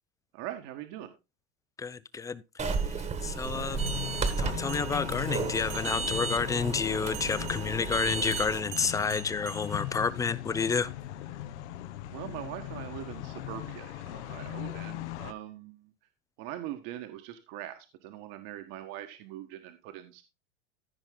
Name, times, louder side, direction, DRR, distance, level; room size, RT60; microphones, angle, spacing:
voice 1, 0.3-1.1 12.1-15.9 16.4-20.2, right 13 dB, 55° right, 1.5 m, -42 dB
voice 2, 1.8-3.8 4.4-10.9, left 5 dB, 10° left, 0.4 m, -30 dB
sound 1, 2.6-8.6, right 4 dB, 20° right, 1.4 m, -33 dB
sound 2, 2.7-6.3 7.1-10.3, right 11 dB, 80° right, 1.9 m, -47 dB
sound 3, 3.5-15.3, left 13 dB, 70° left, 1.1 m, -39 dB
14.5 x 5.4 x 3.8 m
supercardioid pair, 125°, 35 cm